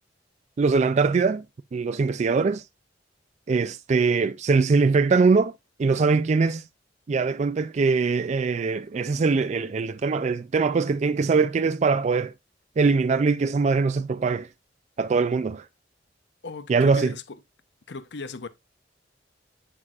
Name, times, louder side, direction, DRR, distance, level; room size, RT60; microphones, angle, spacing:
voice 1, 0.6-1.4 1.7-2.7 3.5-5.5 5.8-6.7 7.1-12.3 12.8-14.5 15.0-15.7 16.7-17.1, right 4 dB, 40° right, 0.3 m, -22 dB
voice 2, 16.4-17.4 17.9-18.5, left 4 dB, 65° left, 0.7 m, -37 dB
9.6 x 6.1 x 2.4 m
head